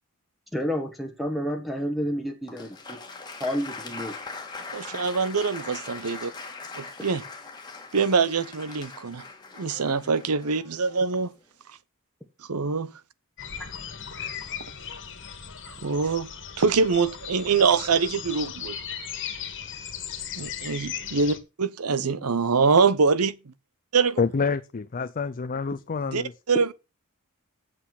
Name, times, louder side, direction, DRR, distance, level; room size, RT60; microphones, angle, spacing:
voice 1, 0.5-3.0 3.4-4.1, equal, ahead, 1.5 m, -30 dB
Applause, 2.5-11.4, left 4 dB, 20° left, 1.9 m, -41 dB
voice 2, 4.7-6.3 6.8-7.2 7.9-9.2 9.6-11.3 12.5-12.9 14.2-14.3 15.8-16.3 16.6-18.8 20.4-23.3 23.9-24.2 26.0-26.7, right 5 dB, 85° right, 0.8 m, -24 dB
sound 1, 13.4-21.4, left 8 dB, 55° left, 1.7 m, -37 dB
voice 3, 24.2-26.3, left 5 dB, 40° left, 0.5 m, -27 dB
8.2 x 7.8 x 5.9 m
head